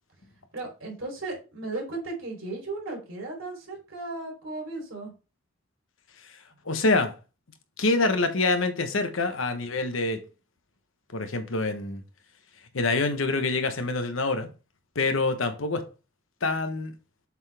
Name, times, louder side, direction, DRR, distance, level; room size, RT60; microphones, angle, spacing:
voice 1, 0.5-5.1, right 2 dB, 85° right, 3.3 m, -35 dB
voice 2, 6.7-7.1 7.8-10.2 11.1-12.0 12.7-14.5 14.9-15.8 16.4-16.9, left 3 dB, 80° left, 1.0 m, -26 dB
7.1 x 4.0 x 3.4 m
head